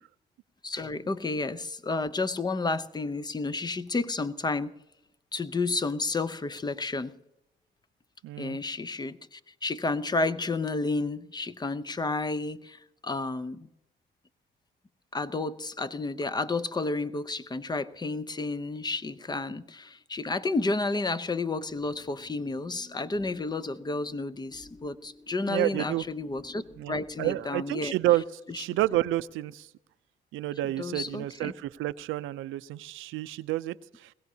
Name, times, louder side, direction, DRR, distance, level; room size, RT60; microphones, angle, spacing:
voice 1, 0.6-4.7 5.3-7.1 8.4-13.7 15.1-26.6 26.9-27.9 28.5-28.6 30.8-31.5, left 3 dB, 20° left, 14 dB, 0.7 m, -31 dB
voice 2, 8.2-8.6 25.5-26.0 26.8-28.2 28.5-29.7 30.3-34.1, right 15 dB, 90° right, 14 dB, 0.5 m, -30 dB
sound 1, 21.7-27.3, left 2 dB, 35° left, 5.2 m, -53 dB
21.0 x 17.0 x 2.8 m, 0.85 s
cardioid pair, 90°, 20 cm